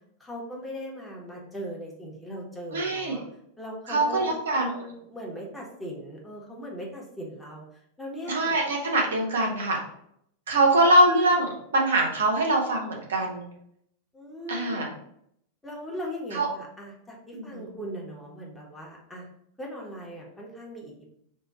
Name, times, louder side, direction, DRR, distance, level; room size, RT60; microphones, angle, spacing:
voice 1, 0.2-3.2 3.6-7.6 8.0-8.5 10.6-10.7 14.1-14.9 15.6-19.3 19.6-21.1, equal, 5° left, -3 dB, 1.1 m, -39 dB
voice 2, 2.7-3.2 3.9-4.9 8.3-9.8 10.5-13.4 14.5-14.9 16.3-16.5 17.3-17.7, right 1 dB, 65° right, 0 dB, 0.9 m, -23 dB
3.7 x 2.7 x 4.1 m, 0.73 s
figure-of-eight pair, 90°, 0 cm